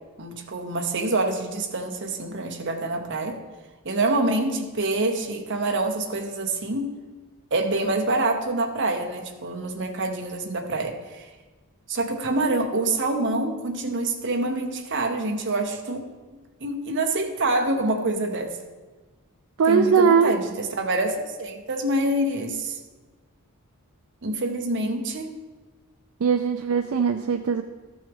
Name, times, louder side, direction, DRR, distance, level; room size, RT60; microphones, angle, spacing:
voice 1, 0.2-3.4 3.8-6.9 7.5-11.3 11.9-16.1 16.6-18.6 19.7-22.8 24.2-25.3, right 2 dB, 55° right, 4 dB, 0.9 m, -26 dB
voice 2, 19.6-20.3 26.2-27.6, right 6 dB, 70° right, 7 dB, 0.4 m, -20 dB
13.0 x 6.1 x 3.6 m, 1.3 s
head